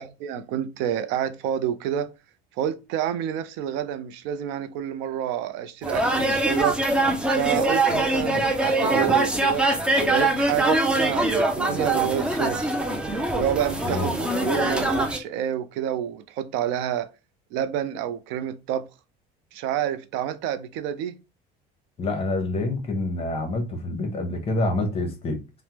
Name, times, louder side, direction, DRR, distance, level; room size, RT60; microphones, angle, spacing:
voice 1, 0.0-2.1 2.6-6.8 7.3-9.7 10.1-12.7 13.3-17.1 17.5-18.8 19.5-21.2, right 10 dB, 75° right, 0.4 m, -28 dB
sound 1, 5.8-15.2, right 2 dB, 5° right, 0.3 m, -23 dB
voice 2, 22.0-25.4, left 2 dB, 30° left, 0.8 m, -27 dB
3.3 x 2.0 x 2.8 m
cardioid pair, 140°, 19 cm